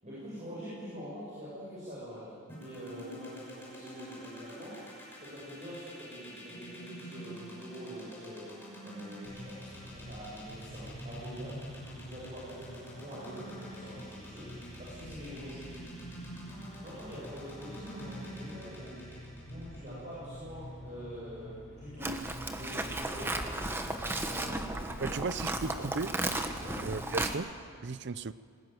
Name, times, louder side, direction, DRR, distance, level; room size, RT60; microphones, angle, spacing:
voice 1, 0.0-4.8 5.1-8.5 8.8-14.5 14.8-15.9 16.8-19.0 19.5-22.2 22.5-24.7 24.9-25.2 26.6-26.8, equal, 35° right, 7.5 m, -45 dB
sound 1, 2.5-20.6, equal, 10° left, 6.2 m, -47 dB
sound 2, 9.2-27.3, equal, 50° left, 2.3 m, -48 dB
Livestock farm animals working animals, 22.0-27.3, right 1 dB, 10° right, 1.1 m, -35 dB
voice 2, 25.0-26.2 26.8-27.5 27.8-28.3, right 4 dB, 55° right, 0.5 m, -35 dB
20.0 x 19.0 x 9.3 m
head